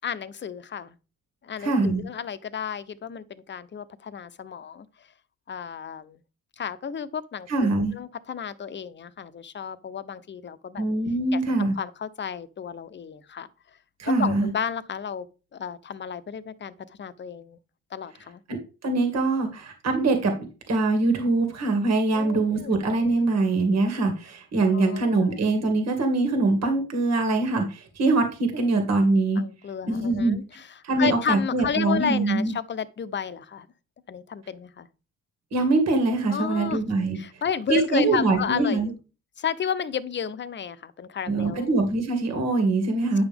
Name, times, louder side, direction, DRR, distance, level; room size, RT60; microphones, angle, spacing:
voice 1, 0.0-0.9 1.4-4.9 5.5-6.2 6.6-10.9 11.3-13.5 14.2-15.3 15.5-16.7 17.0-17.6 17.9-18.4 22.1-22.8 24.7-25.4 29.4-33.7 34.1-34.9 36.3-36.8 37.1-38.9 39.4-41.8, left 7 dB, 35° left, 0.8 m, -32 dB
voice 2, 1.6-2.0 7.5-7.9 10.8-11.7 14.0-14.5 18.5-29.4 29.9-30.4 30.8-32.5 35.5-37.2 37.7-38.9 41.3-43.2, right 3 dB, 60° right, 2.1 m, -23 dB
9.5 x 6.0 x 3.5 m
cardioid pair, 90°, 30 cm